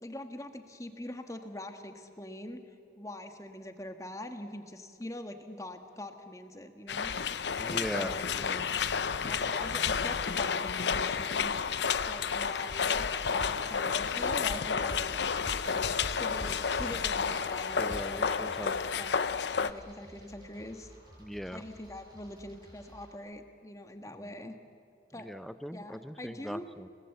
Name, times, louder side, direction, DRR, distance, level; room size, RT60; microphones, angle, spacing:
voice 1, 0.0-2.6 3.0-7.1 7.7-8.2 9.2-11.5 12.1-15.2 15.8-18.4 19.0-19.2 19.6-20.9 21.5-24.5 25.1-25.3 25.7-26.7, left 1 dB, 20° left, 6 dB, 1.6 m, -43 dB
sound 1, 6.9-19.7, left 6 dB, 75° left, 0.7 m, -31 dB
voice 2, 7.6-8.7 17.8-18.7 21.2-21.6 24.1-24.4 25.2-26.9, equal, ahead, 12 dB, 0.7 m, -40 dB
sound 2, 12.9-19.1, right 1 dB, 50° right, 3.0 m, -47 dB
sound 3, 14.8-23.1, equal, 25° right, 7.0 m, -55 dB
30.0 x 19.5 x 8.1 m, 2.4 s
head